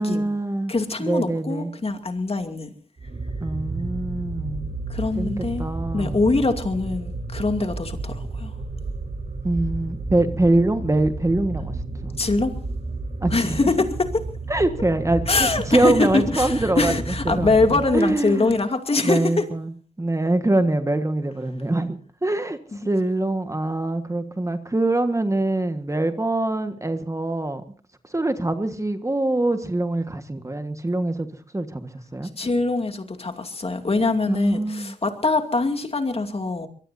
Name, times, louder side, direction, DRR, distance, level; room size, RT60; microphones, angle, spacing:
voice 1, 0.0-0.7 1.0-1.7 3.4-4.7 5.1-6.2 9.4-11.7 12.0-12.1 13.2-13.7 14.5-16.9 17.2-18.5 19.0-27.6 28.0-31.3 31.5-32.3 34.3-34.9, right 2 dB, 20° right, 1.5 m, -24 dB
voice 2, 0.7-2.7 4.9-5.7 5.9-8.5 12.2-12.5 13.3-13.9 14.1-14.2 15.3-19.4 22.8-22.9 32.3-36.7, left 3 dB, 40° left, 2.5 m, -23 dB
sound 1, 3.0-18.3, right 3 dB, 55° right, 3.4 m, -32 dB
23.5 x 22.5 x 2.7 m
wide cardioid pair, 85°, 15 cm